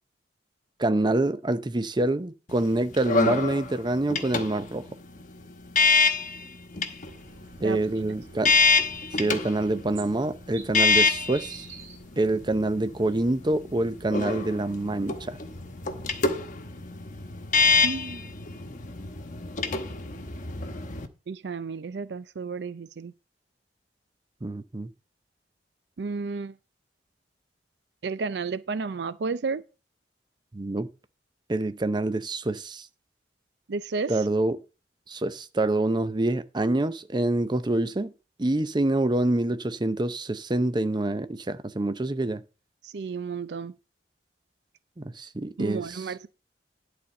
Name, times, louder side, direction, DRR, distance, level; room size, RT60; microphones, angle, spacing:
voice 1, 0.8-4.8 7.6-8.5 9.2-11.6 12.2-15.4 24.4-24.9 30.5-30.9 31.5-32.9 34.1-34.6 35.1-38.1 38.4-42.4 45.0-46.0, right 2 dB, 25° right, 0.6 m, -26 dB
sound 1, 2.5-21.1, left 4 dB, 45° left, 1.0 m, -27 dB
sound 2, 7.0-16.4, right 4 dB, 90° right, 2.6 m, -47 dB
voice 2, 7.6-8.2 17.8-18.3 21.3-23.1 26.0-26.5 28.0-29.6 33.7-34.2 42.8-43.8 45.6-46.3, right 4 dB, 65° right, 0.5 m, -32 dB
11.0 x 4.3 x 6.5 m
head